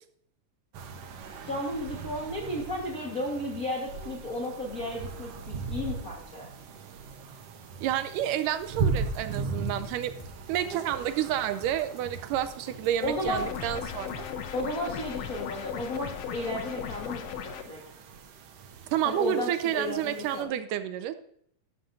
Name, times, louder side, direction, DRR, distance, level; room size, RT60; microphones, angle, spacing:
sound 1, 0.7-20.4, right 4 dB, 65° right, 1.6 m, -39 dB
voice 1, 1.5-6.5 13.0-13.5 14.5-17.3 17.6-17.8 19.0-20.5, left 1 dB, 50° left, -2 dB, 1.0 m, -33 dB
voice 2, 7.8-10.1 10.5-14.3 18.9-21.1, right 11 dB, 85° right, 11 dB, 2.2 m, -30 dB
sound 2, 8.8-14.4, equal, 30° left, 0.5 m, -49 dB
sound 3, 13.2-17.6, left 8 dB, 80° left, 1.5 m, -37 dB
13.0 x 11.5 x 2.6 m, 0.68 s
omnidirectional pair, 3.8 m